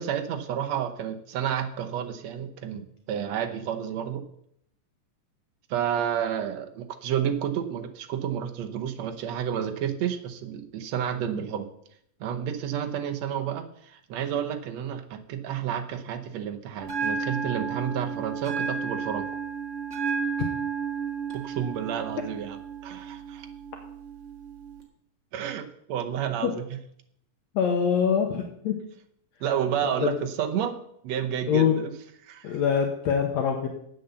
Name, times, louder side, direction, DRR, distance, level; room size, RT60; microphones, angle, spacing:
voice 1, 0.0-4.2 5.7-11.7 12.2-19.3 21.3-23.5 25.3-26.6 29.4-30.8 31.0-31.9 32.2-32.6, right 9 dB, 70° right, 6 dB, 1.9 m, -30 dB
Bell, 16.8-24.8, right 5 dB, 30° right, 1.5 m, -33 dB
voice 2, 27.6-28.8 29.8-30.1 31.5-31.8 32.4-33.7, left 7 dB, 70° left, 3 dB, 2.1 m, -24 dB
9.3 x 7.9 x 6.9 m, 0.72 s
omnidirectional pair, 3.6 m